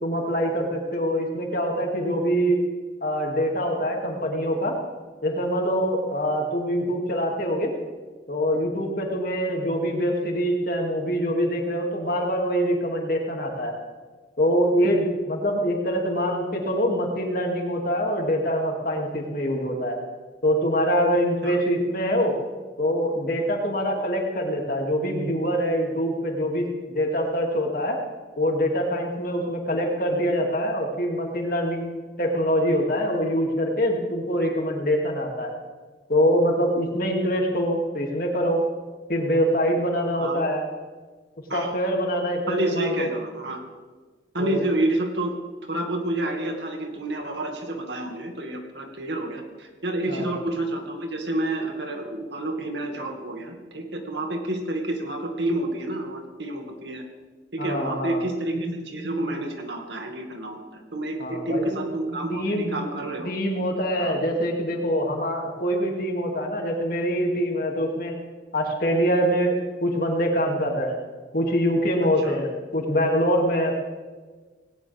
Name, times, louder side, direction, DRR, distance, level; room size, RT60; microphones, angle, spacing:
voice 1, 0.0-2.6 3.0-4.8 5.2-7.7 8.3-13.7 14.4-20.0 20.4-22.4 22.8-28.0 28.4-31.9 32.2-35.5 36.1-38.6 39.1-40.6 41.5-43.1 44.4-44.6 50.1-50.3 57.6-58.2 61.2-61.8 62.3-62.8 63.3-68.2 68.5-71.0 71.3-73.7, equal, 50° left, 0 dB, 2.7 m, -24 dB
voice 2, 41.5-41.9 42.5-43.6 44.3-45.3 45.7-57.0 57.5-63.3 64.0-64.2 72.2-72.3, right 1 dB, 70° right, 3 dB, 2.2 m, -29 dB
18.5 x 18.0 x 3.6 m, 1.4 s
head